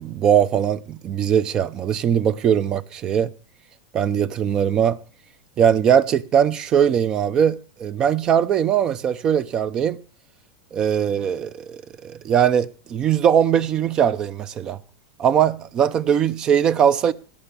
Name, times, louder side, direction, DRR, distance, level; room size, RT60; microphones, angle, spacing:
voice 1, 0.0-3.3 3.9-5.0 5.6-10.0 10.7-14.8 15.2-17.1, right 8 dB, 25° right, 0.5 m, -20 dB
17.0 x 6.0 x 6.9 m
supercardioid pair, 160°, 3 cm